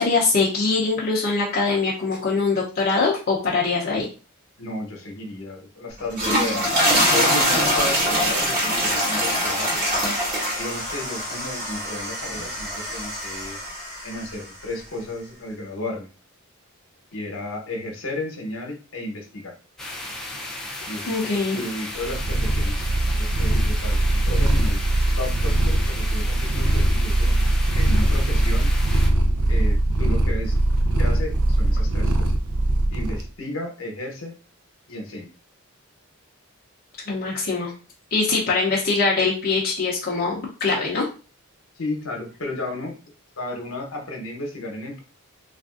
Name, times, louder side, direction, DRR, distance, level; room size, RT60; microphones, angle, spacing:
voice 1, 0.0-4.1 21.0-21.6 37.1-37.7 38.1-41.1, left 4 dB, 45° left, -4 dB, 0.6 m, -22 dB
voice 2, 4.6-9.8 10.5-13.6 14.0-16.1 17.1-19.5 20.9-22.9 23.1-24.8 25.2-27.3 27.7-28.7 29.5-30.6 31.0-32.3 32.9-34.3 34.9-35.3 41.8-42.9 43.4-45.0, left 2 dB, 75° left, 1 dB, 1.0 m, -33 dB
sound 1, 6.0-14.3, equal, 40° right, 1.1 m, -23 dB
sound 2, 19.8-29.1, left 1 dB, 5° left, 0.4 m, -35 dB
Purr, 22.0-33.3, right 1 dB, 85° right, 0.5 m, -21 dB
3.4 x 2.5 x 2.4 m, 0.35 s
head